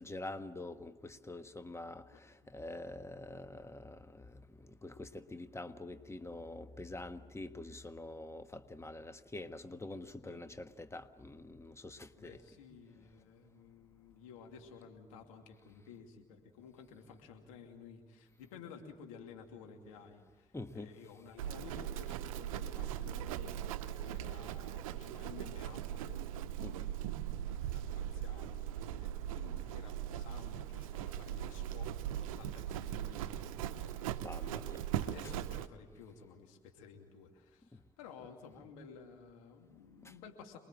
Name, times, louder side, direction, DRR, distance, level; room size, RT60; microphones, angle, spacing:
voice 1, 0.0-4.4 4.7-12.4 20.5-20.9 26.6-26.7 34.2-35.1 40.0-40.1, left 2 dB, 15° left, 1.4 m, -46 dB
voice 2, 2.1-2.5 10.2-10.4 12.2-27.0 27.6-34.7 35.0-40.6, left 5 dB, 85° left, 2.7 m, -54 dB
Livestock farm animals working animals, 21.4-35.7, right 11 dB, 90° right, 0.7 m, -39 dB
27.5 x 21.5 x 7.5 m
hypercardioid pair, 45°, 17 cm